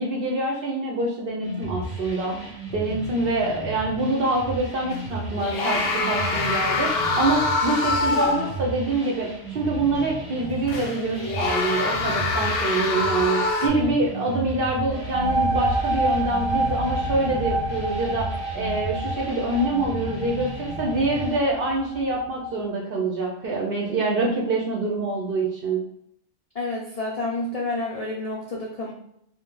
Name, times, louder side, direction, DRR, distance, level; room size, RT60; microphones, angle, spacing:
voice 1, 0.0-25.8, right 2 dB, 60° right, -2 dB, 0.6 m, -25 dB
sound 1, 1.4-21.4, right 1 dB, 15° right, 0.8 m, -35 dB
sound 2, 4.9-5.0 5.4-8.7 9.0-9.1 10.7-13.7, left 3 dB, 65° left, 0.7 m, -25 dB
sound 3, 14.9-22.3, right 2 dB, 90° right, 0.9 m, -28 dB
voice 2, 26.5-28.9, left 2 dB, 80° left, -2 dB, 0.3 m, -29 dB
2.5 x 2.1 x 3.7 m, 0.75 s
omnidirectional pair, 1.3 m